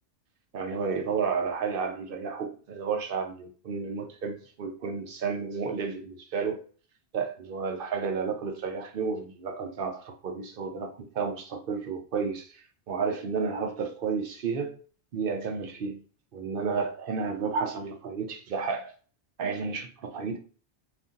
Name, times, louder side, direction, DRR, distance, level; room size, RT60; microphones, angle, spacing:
voice 1, 0.5-6.7 7.1-14.8 15.1-16.0 16.3-18.9 19.4-20.4, right 5 dB, 55° right, 0.7 m, -32 dB
2.7 x 2.5 x 3.7 m
omnidirectional pair, 1.2 m